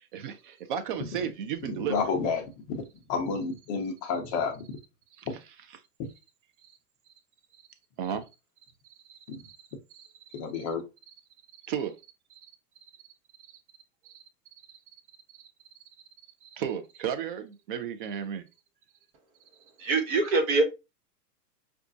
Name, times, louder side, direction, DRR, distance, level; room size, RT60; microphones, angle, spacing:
voice 1, 0.0-2.0 5.2-5.3 8.0-8.2 9.1-9.2 9.5-9.6 9.9-10.1 11.7-11.9 14.0-14.2 15.4-15.5 16.4-18.4, right 8 dB, 35° right, 0.4 m, -34 dB
voice 2, 1.9-2.8 3.1-4.6 5.3-5.4 9.3-9.4 10.3-10.8, left 5 dB, 25° left, 0.4 m, -30 dB
voice 3, 19.8-20.6, right 3 dB, 60° right, 1.1 m, -23 dB
4.8 x 2.4 x 2.5 m
hypercardioid pair, 145°, 47 cm